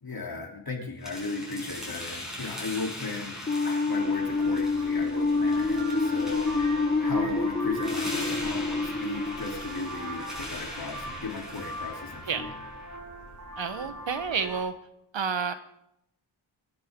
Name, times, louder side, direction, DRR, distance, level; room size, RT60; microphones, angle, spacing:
voice 1, 0.0-12.5, left 3 dB, 50° left, 1 dB, 3.4 m, -36 dB
sound 1, 1.0-13.0, left 1 dB, ahead, 6.7 m, -41 dB
sound 2, 3.5-10.3, left 3 dB, 20° left, 1.1 m, -27 dB
Vehicle horn car horn honking, 3.9-14.6, right 1 dB, 40° right, 6.2 m, -41 dB
voice 2, 13.6-14.7 15.1-15.5, right 6 dB, 70° right, 10 dB, 1.3 m, -29 dB
24.0 x 10.5 x 3.8 m, 0.77 s
wide cardioid pair, 80°, 47 cm